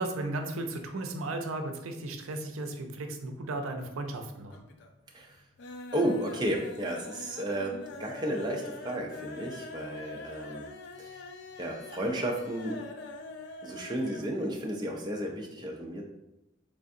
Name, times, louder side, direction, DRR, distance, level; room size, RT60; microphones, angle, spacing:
voice 1, 0.0-4.5, right 2 dB, 85° right, 5 dB, 0.5 m, -35 dB
sound 1, 3.5-4.2 4.5-5.0 5.3-14.3 14.6-14.7 15.0-15.1, left 2 dB, 55° left, 0.3 m, -44 dB
voice 2, 5.9-10.7 11.0-11.2 11.6-12.8 13.6-16.0, right 1 dB, 20° right, 0 dB, 0.4 m, -33 dB
3.7 x 3.4 x 2.5 m, 0.92 s
head